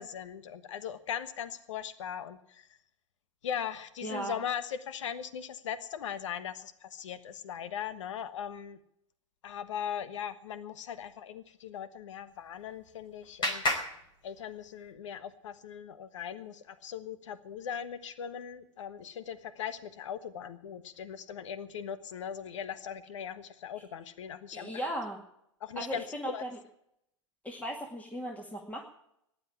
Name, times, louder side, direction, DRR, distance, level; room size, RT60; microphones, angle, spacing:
voice 1, 0.0-2.7 3.4-8.8 9.4-13.6 14.2-24.7 25.6-26.0 26.3-26.4, left 8 dB, 75° left, 13 dB, 1.3 m, -39 dB
voice 2, 4.0-4.3 24.5-25.2 25.8-26.5 27.4-28.8, right 1 dB, 10° left, 1 dB, 2.3 m, -37 dB
Clapping, 12.3-14.9, left 1 dB, 30° left, 4.4 m, -36 dB
15.0 x 11.0 x 8.6 m, 0.76 s
hypercardioid pair, 105°, 16 cm